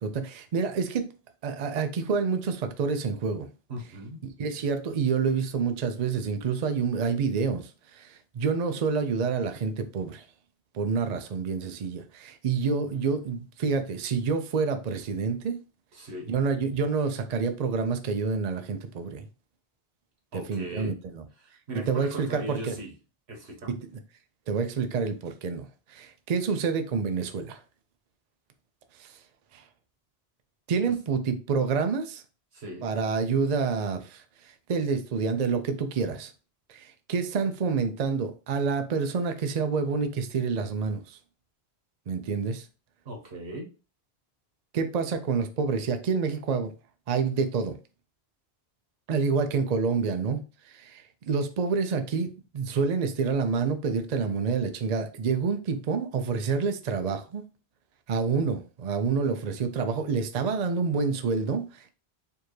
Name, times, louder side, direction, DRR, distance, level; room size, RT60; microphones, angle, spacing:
voice 1, 0.0-1.1 1.4-3.5 4.4-10.2 10.7-15.6 16.3-19.3 20.3-21.2 21.9-22.7 23.7-23.8 24.5-27.6 29.0-29.2 29.5-29.6 30.7-32.2 32.8-36.3 36.7-41.2 42.1-42.7 44.7-46.7 47.1-47.8 49.1-57.4 58.1-61.9, right 5 dB, 50° right, 0.5 m, -28 dB
voice 2, 3.7-4.2 15.9-16.3 20.3-21.0 21.4-22.9 23.3-23.7 32.5-32.9 43.0-43.7, right 1 dB, 80° right, 1.5 m, -38 dB
4.5 x 2.7 x 3.1 m
omnidirectional pair, 1.1 m